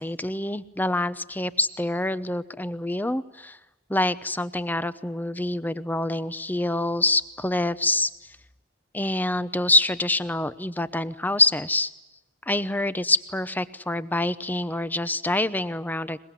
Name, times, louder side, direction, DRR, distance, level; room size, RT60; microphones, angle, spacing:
voice 1, 0.0-3.6 3.9-8.1 8.9-11.9 12.5-16.2, left 2 dB, 10° left, 15 dB, 0.8 m, -26 dB
23.0 x 22.0 x 9.9 m, 0.98 s
head